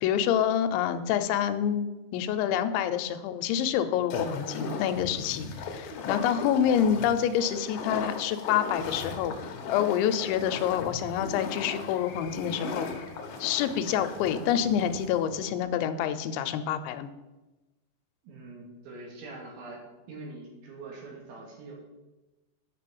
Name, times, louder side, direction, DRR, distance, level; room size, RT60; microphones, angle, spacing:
voice 1, 0.0-12.9 13.4-17.1, left 9 dB, 85° left, 9 dB, 3.0 m, -27 dB
sound 1, 4.1-15.1, left 4 dB, 65° left, 2.6 m, -37 dB
voice 2, 5.1-5.4 18.2-19.8 20.1-21.7, right 3 dB, 80° right, -1 dB, 4.7 m, -44 dB
Acoustic guitar, 10.5-15.6, right 3 dB, 45° right, 2.4 m, -49 dB
9.3 x 5.4 x 7.6 m, 1.1 s
omnidirectional pair, 5.3 m